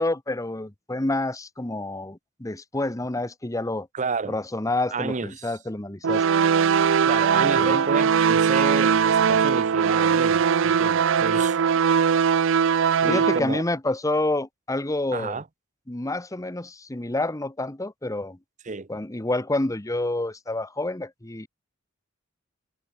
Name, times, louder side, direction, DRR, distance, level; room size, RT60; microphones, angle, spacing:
voice 1, 0.0-3.9 4.3-6.2 7.6-7.9 13.1-15.4 15.9-18.4 18.9-21.5, left 2 dB, 15° left, 1.0 m, -28 dB
voice 2, 3.9-4.4 4.9-5.5 7.0-11.6 13.0-13.6 15.1-15.4 18.6-18.9, right 4 dB, 35° right, 0.9 m, -31 dB
sound 1, 6.0-13.4, right 6 dB, 65° right, 0.5 m, -20 dB
head